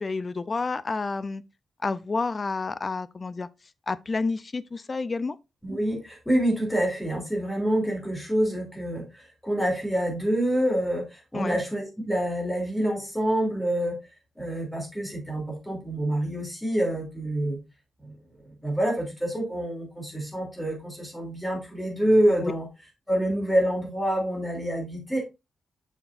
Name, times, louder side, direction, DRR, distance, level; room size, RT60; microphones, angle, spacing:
voice 1, 0.0-1.4 1.8-3.5 3.9-5.4 11.3-11.6 22.4-22.5, left 3 dB, 35° left, 0.4 m, -29 dB
voice 2, 5.6-14.0 14.4-17.6 18.0-18.1 18.6-22.7 23.1-25.2, right 1 dB, 10° left, 2.9 m, -27 dB
6.9 x 5.9 x 2.5 m
cardioid pair, 110°, 0 cm